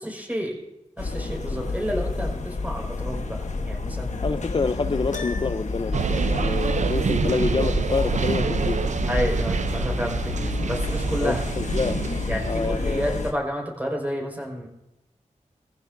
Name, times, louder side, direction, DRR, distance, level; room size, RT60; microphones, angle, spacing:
voice 1, 0.0-0.6 1.0-4.2 9.1-11.4 12.3-14.7, equal, 15° right, -1 dB, 5.0 m, -30 dB
sound 1, 1.0-13.3, left 3 dB, 70° left, 1.2 m, -30 dB
voice 2, 4.2-8.8 11.2-12.0 12.5-13.2, left 4 dB, 40° left, 10 dB, 0.5 m, -27 dB
Piano, 5.1-6.0, left 4 dB, 90° left, 0.9 m, -37 dB
sound 2, 5.9-13.2, right 5 dB, 70° right, 0.5 m, -27 dB
20.5 x 15.5 x 2.6 m, 0.90 s
wide cardioid pair, 65°, 13 cm